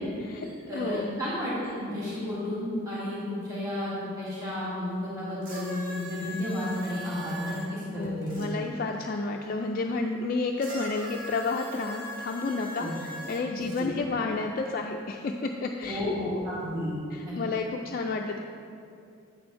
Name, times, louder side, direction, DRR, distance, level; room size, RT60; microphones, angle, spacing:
voice 1, 0.0-8.5 12.8-12.9 13.5-13.9 15.8-16.9 17.2-17.3, left 1 dB, 15° right, -10 dB, 1.6 m, -32 dB
voice 2, 0.7-1.1 8.0-16.1 17.1-18.4, left 3 dB, 45° left, 2 dB, 0.3 m, -31 dB
sound 1, 5.4-8.5 10.6-13.9 14.8-14.9, equal, 40° right, 1.1 m, -41 dB
8.5 x 4.4 x 5.5 m, 2.5 s
head